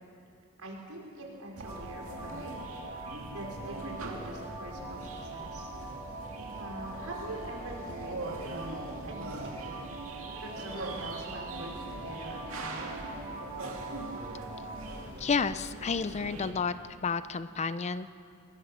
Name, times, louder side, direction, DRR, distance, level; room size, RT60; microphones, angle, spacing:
voice 1, 0.6-2.6 3.0-5.7 6.6-8.7 9.0-12.9, right 2 dB, 85° right, -2 dB, 4.7 m, -44 dB
sound 1, 1.5-16.5, right 2 dB, 65° right, 2.4 m, -42 dB
sound 2, 1.6-14.9, right 2 dB, 20° right, 5.8 m, -43 dB
voice 2, 15.2-16.7 17.0-18.1, left 5 dB, 30° left, 14 dB, 0.5 m, -30 dB
21.0 x 21.0 x 6.3 m, 2.6 s
head